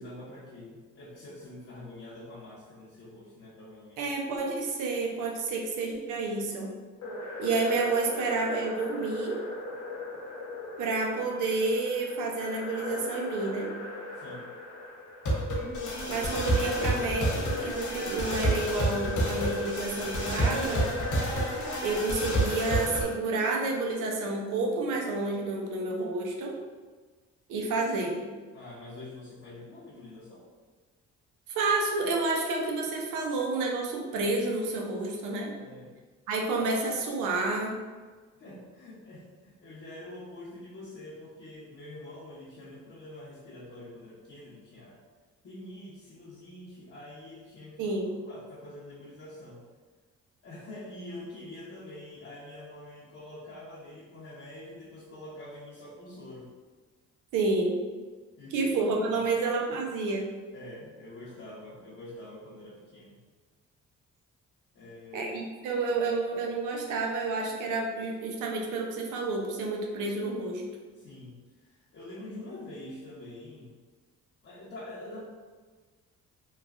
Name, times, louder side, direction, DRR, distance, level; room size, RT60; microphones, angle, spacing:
voice 1, 0.0-4.0 14.2-14.5 28.5-30.5 35.5-36.0 38.4-45.0 45.4-48.0 48.3-49.6 50.4-56.5 58.4-59.4 60.5-63.2 64.7-65.3 70.9-71.4 71.6-73.7 74.4-75.2, left 1 dB, 45° left, -8 dB, 0.8 m, -45 dB
voice 2, 4.0-6.7 7.4-9.4 10.8-13.7 16.1-20.8 21.8-26.5 27.5-28.2 31.5-35.5 36.3-37.7 47.8-48.1 57.3-57.8 58.5-60.3 65.1-70.6, right 3 dB, 85° right, 1 dB, 0.6 m, -30 dB
sound 1, 7.0-23.0, equal, 80° left, 0.8 m, -32 dB
sound 2, 15.5-22.0, equal, 25° right, 1.1 m, -41 dB
3.1 x 2.3 x 2.4 m, 1.4 s
cardioid pair, 90°, 30 cm